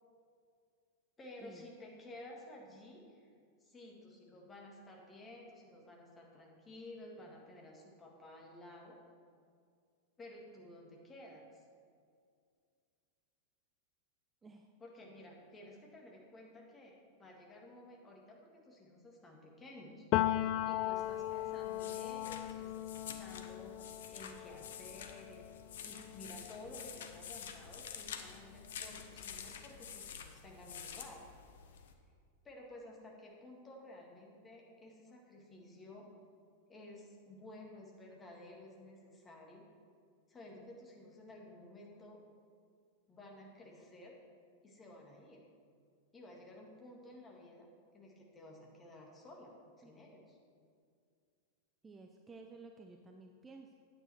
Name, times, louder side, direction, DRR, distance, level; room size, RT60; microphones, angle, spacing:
voice 1, 1.2-3.3 3.6-9.0 10.2-11.6 14.8-20.1 20.3-25.5 25.8-31.2 32.4-36.1 36.7-39.6 40.3-42.2 43.1-44.2 44.6-45.4 46.1-50.4, left 1 dB, 20° left, -1 dB, 1.9 m, -53 dB
Piano, 20.1-27.7 28.1-29.6, left 14 dB, 40° left, 0.3 m, -39 dB
sound 1, 21.0-31.9, left 7 dB, 60° left, 0.7 m, -49 dB
voice 2, 51.8-53.8, right 3 dB, 15° right, 4 dB, 0.6 m, -54 dB
9.0 x 8.9 x 4.5 m, 2.2 s
figure-of-eight pair, 90°, 0 cm